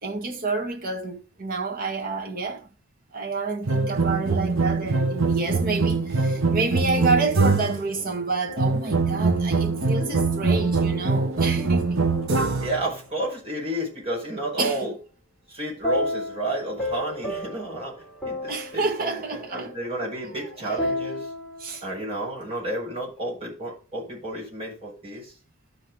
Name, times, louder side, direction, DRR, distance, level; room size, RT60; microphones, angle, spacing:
voice 1, 0.0-2.7 3.1-12.1 14.6-14.9 18.5-20.7 21.6-21.8, right 3 dB, 45° right, 1.8 m, -29 dB
sound 1, 3.7-7.9 8.6-12.8, right 4 dB, 65° right, 1.2 m, -23 dB
sound 2, 7.0-9.1 10.0-13.4 15.8-21.9, left 1 dB, 5° left, 3.7 m, -35 dB
voice 2, 12.6-14.9 15.5-17.9 18.2-21.3 21.8-25.3, right 1 dB, 30° right, 5.3 m, -31 dB
12.5 x 5.0 x 3.9 m
head